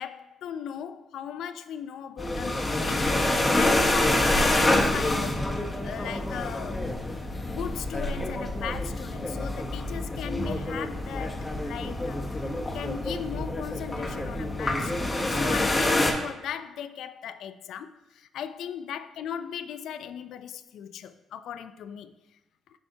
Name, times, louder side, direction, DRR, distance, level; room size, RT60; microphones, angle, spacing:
voice 1, 0.0-5.4 5.8-6.9 7.4-12.5 12.7-22.1, left 8 dB, 75° left, 0.3 m, -38 dB
sound 1, 2.2-16.1, left 1 dB, 15° left, 0.9 m, -27 dB
7.6 x 5.6 x 2.7 m
cardioid pair, 90°, 0 cm